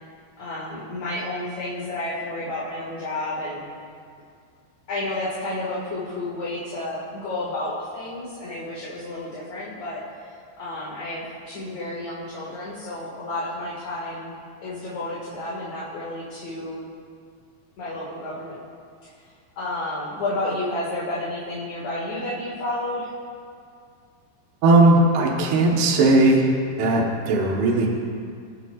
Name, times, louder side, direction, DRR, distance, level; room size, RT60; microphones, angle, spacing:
voice 1, 0.4-3.6 4.9-10.0 10.6-14.3 14.6-16.8 17.8-18.6 19.6-23.1, left 1 dB, 50° left, -7 dB, 2.5 m, -31 dB
voice 2, 24.6-26.5 26.8-27.9, right 2 dB, 70° right, -2 dB, 3.2 m, -17 dB
26.5 x 9.2 x 2.4 m, 2.3 s
omnidirectional pair, 5.0 m